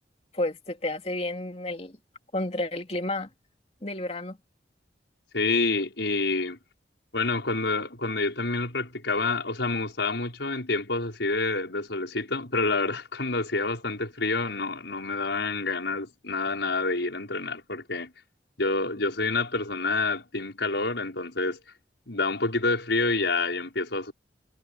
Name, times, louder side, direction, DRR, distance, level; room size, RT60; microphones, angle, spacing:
voice 1, 0.3-2.0 2.3-3.3 3.8-4.4, left 2 dB, 35° left, 2.9 m, -31 dB
voice 2, 5.3-6.6 7.1-18.1 18.6-21.6 22.1-24.1, left 3 dB, 85° left, 5.7 m, -28 dB
head